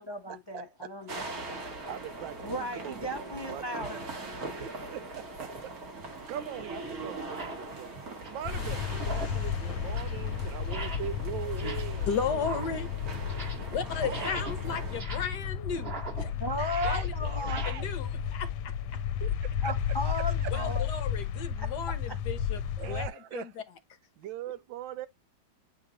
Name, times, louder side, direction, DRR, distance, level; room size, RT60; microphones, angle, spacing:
voice 1, 0.0-1.2 1.5-1.6 2.4-4.1 16.4-17.7 19.6-20.9 21.6-21.9, left 1 dB, 35° left, 0.4 m, -35 dB
voice 2, 0.5-0.9 1.9-3.1 3.5-3.8 4.6-5.5 6.3-7.9 8.3-12.6 14.0-14.4 16.6-17.9 19.2-19.3 19.6-19.7 20.1-20.5 22.8-23.5 24.2-25.1, right 11 dB, 80° right, 1.3 m, -41 dB
sound 1, 1.1-15.0, right 2 dB, 50° right, 2.0 m, -41 dB
sound 2, 5.7-5.8 6.5-6.6 7.2-7.7 8.0-8.5 8.9-9.5 9.8-10.2 10.6-11.2 11.5-12.0 12.3-13.7 14.0-17.7, right 4 dB, 30° right, 1.7 m, -42 dB
sound 3, 8.4-23.1, left 8 dB, 85° left, 1.4 m, -33 dB
voice 3, 12.1-12.9 13.7-16.3 16.8-17.1 17.7-18.7 20.5-22.6 22.9-23.6, left 6 dB, 65° left, 1.3 m, -35 dB
8.3 x 3.0 x 3.8 m
omnidirectional pair, 2.1 m